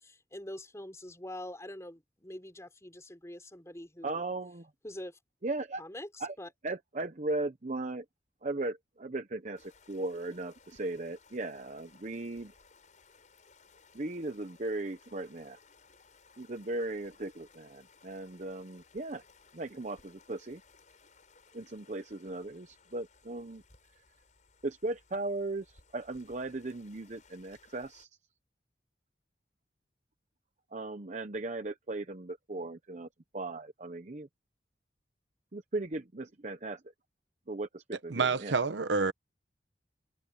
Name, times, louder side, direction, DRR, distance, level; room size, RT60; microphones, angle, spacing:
voice 1, 0.0-4.2 4.8-5.2 5.8-6.5, left 1 dB, 15° left, 4.4 m, -44 dB
voice 2, 4.0-4.7 5.4-5.8 6.2-6.3 6.6-8.0 8.4-12.5 13.9-15.6 16.4-19.2 19.5-20.6 21.5-23.6 24.6-25.7 25.9-28.1 30.7-33.1 33.3-34.3 35.5-36.8 37.5-38.5, right 2 dB, 40° right, 0.9 m, -37 dB
sound 1, 9.6-28.1, left 4 dB, 45° left, 5.4 m, -62 dB
voice 3, 38.1-39.1, right 4 dB, 90° right, 0.9 m, -28 dB
open air
head